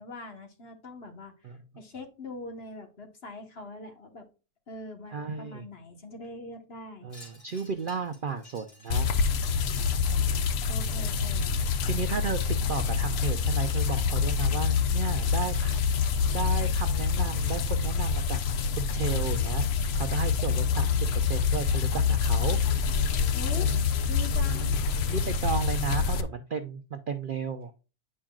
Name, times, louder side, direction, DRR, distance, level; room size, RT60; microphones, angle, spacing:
voice 1, 0.0-4.3 4.7-7.1 10.7-11.6 23.3-25.1 25.9-26.0, left 2 dB, 45° left, 4 dB, 1.4 m, -43 dB
voice 2, 5.1-5.7 7.0-9.1 9.6-10.1 11.9-16.0 16.3-18.4 18.8-19.7 19.9-22.6 23.5-23.8 24.4-24.7 25.1-27.7, right 5 dB, 85° right, 7 dB, 0.4 m, -34 dB
Wind chime, 7.1-11.7, left 1 dB, 85° left, 3.0 m, -55 dB
sound 1, 8.9-26.2, left 6 dB, 65° left, 0.6 m, -26 dB
8.7 x 5.4 x 2.3 m, 0.32 s
omnidirectional pair, 1.6 m